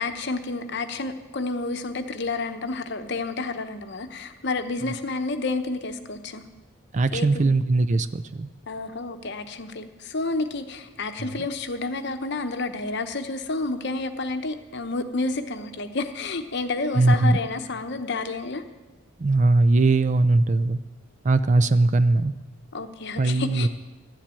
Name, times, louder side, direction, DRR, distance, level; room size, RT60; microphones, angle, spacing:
voice 1, 0.0-6.4 7.1-7.5 8.7-18.6 22.7-23.7, left 3 dB, 55° left, 8 dB, 0.9 m, -30 dB
voice 2, 6.9-8.5 11.2-11.4 16.9-17.4 19.2-20.8 21.2-22.3 23.2-23.7, right 2 dB, 35° right, 12 dB, 0.4 m, -20 dB
12.0 x 7.4 x 8.9 m, 1.2 s
head